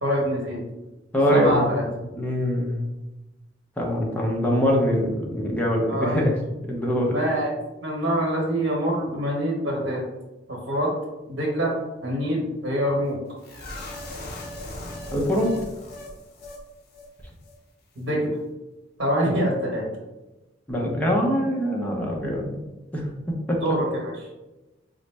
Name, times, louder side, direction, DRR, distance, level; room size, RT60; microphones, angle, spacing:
voice 1, 0.0-0.6 1.3-1.8 5.9-6.2 7.1-7.5 7.8-10.0 10.5-10.9 11.3-11.7 12.0-13.2 18.0-18.3 19.0-19.9 23.6-24.1, equal, 70° right, -3 dB, 1.0 m, -25 dB
voice 2, 1.1-1.8 2.1-2.8 3.8-6.4 6.7-7.2 15.1-15.5 20.7-22.6 22.9-23.6, equal, 10° left, -2 dB, 0.6 m, -23 dB
sound 1, 13.4-16.6 16.9-17.1 17.4-17.6, left 1 dB, 55° left, 0.6 m, -38 dB
3.9 x 2.0 x 3.3 m, 1.0 s
head